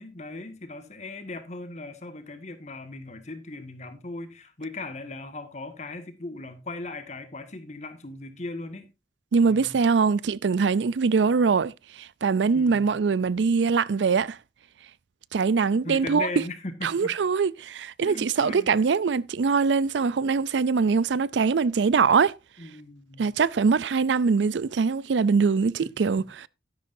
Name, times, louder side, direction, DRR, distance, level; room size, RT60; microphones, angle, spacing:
voice 1, 0.0-8.9 9.4-9.8 12.5-12.9 15.8-17.2 18.0-18.7 22.6-23.3 25.8-26.2, left 2 dB, 40° left, 1.8 m, -38 dB
voice 2, 9.3-11.7 12.0-14.4 15.3-16.3 16.8-22.3 23.2-26.5, right 5 dB, 85° right, 0.4 m, -23 dB
12.5 x 10.5 x 2.6 m
head